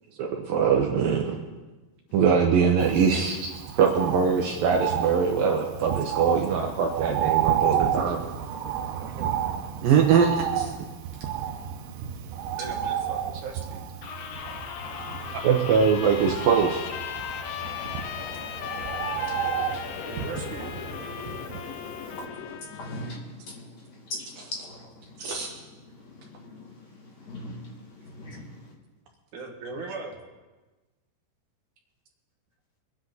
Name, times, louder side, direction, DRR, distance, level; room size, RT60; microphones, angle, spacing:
voice 1, 0.2-1.4 2.1-3.5 3.8-8.2 9.8-10.7 15.4-16.8 25.2-25.5, right 6 dB, 70° right, 1 dB, 2.2 m, -22 dB
Bird, 2.8-21.9 22.2-22.3, right 9 dB, 90° right, 3.1 m, -31 dB
voice 2, 9.0-9.4 12.6-13.9 20.0-20.7 29.3-30.2, right 4 dB, 55° right, 0 dB, 2.6 m, -38 dB
voice 3, 11.4-12.6 14.8-15.5 17.5-20.1 21.6-28.7, left 1 dB, 45° left, -2 dB, 3.1 m, -43 dB
sound 1, 14.0-22.6, left 5 dB, 70° left, 2.5 m, -39 dB
Trumpet, 14.1-23.2, left 10 dB, 85° left, 3.1 m, -39 dB
23.5 x 10.0 x 4.0 m, 1.2 s
omnidirectional pair, 5.1 m